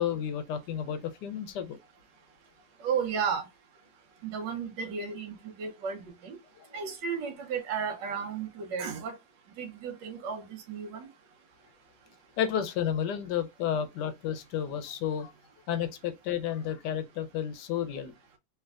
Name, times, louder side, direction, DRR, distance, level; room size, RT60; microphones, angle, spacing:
voice 1, 0.0-1.8 6.6-6.7 12.4-15.3 15.7-18.1, left 9 dB, 75° left, 1.2 m, -31 dB
voice 2, 2.8-3.5 4.2-6.4 6.7-9.2 9.6-11.1, right 6 dB, 80° right, 1.4 m, -33 dB
3.3 x 3.1 x 2.3 m
omnidirectional pair, 1.9 m